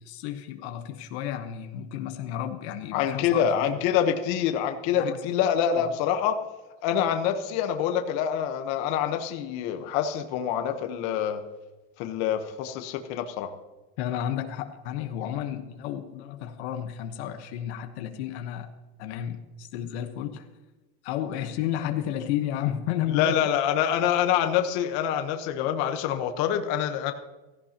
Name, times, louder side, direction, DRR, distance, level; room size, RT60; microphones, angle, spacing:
voice 1, 0.0-3.8 4.9-5.3 5.8-5.9 14.0-18.7 19.0-20.4 21.0-23.4, left 10 dB, 75° left, 7 dB, 1.2 m, -32 dB
voice 2, 2.9-6.4 6.8-11.4 12.0-13.5 23.1-27.1, left 9 dB, 55° left, 7 dB, 1.2 m, -26 dB
16.0 x 14.5 x 3.0 m, 1.1 s
supercardioid pair, 150°, 33 cm